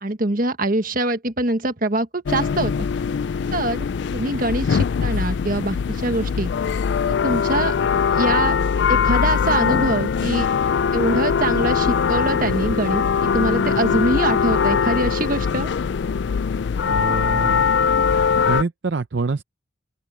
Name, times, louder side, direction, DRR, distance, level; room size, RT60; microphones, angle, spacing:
voice 1, 0.0-2.7 3.5-3.8 4.1-6.5 7.1-7.7 8.1-8.6 8.9-10.5 10.9-15.7, right 1 dB, 45° right, 1.5 m, -24 dB
sound 1, 2.3-18.6, left 6 dB, 60° left, 0.3 m, -21 dB
voice 2, 16.9-17.7 18.3-19.4, right 4 dB, 60° right, 0.6 m, -25 dB
open air
head